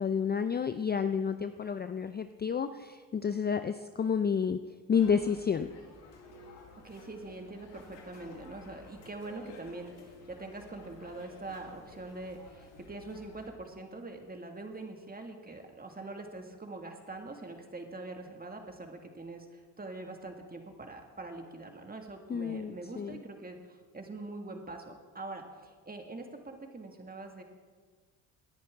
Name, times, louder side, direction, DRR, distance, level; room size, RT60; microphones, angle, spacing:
voice 1, 0.0-4.6 4.9-5.7 22.3-23.2, left 6 dB, 25° left, 10 dB, 0.5 m, -30 dB
sound 1, 4.9-13.5, left 3 dB, 80° left, 1.9 m, -53 dB
voice 2, 6.8-27.4, right 2 dB, 20° right, 3 dB, 2.0 m, -44 dB
18.0 x 10.5 x 3.6 m, 1.5 s
supercardioid pair, 70°, 43 cm